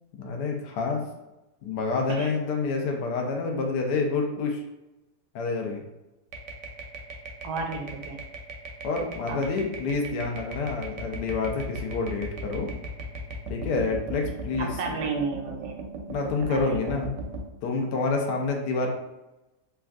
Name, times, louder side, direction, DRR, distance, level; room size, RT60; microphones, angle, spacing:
voice 1, 0.2-1.0 1.6-4.6 5.3-5.8 8.8-12.7 13.5-14.7 16.1-17.1 17.6-18.9, left 4 dB, 85° left, 1 dB, 1.2 m, -28 dB
sound 1, 6.3-17.5, right 1 dB, 70° right, 0.9 m, -37 dB
voice 2, 7.4-8.2 9.3-9.7 14.6-15.8 16.5-17.0, right 4 dB, 85° right, 2 dB, 1.2 m, -33 dB
3.4 x 2.3 x 2.3 m, 0.99 s
omnidirectional pair, 1.8 m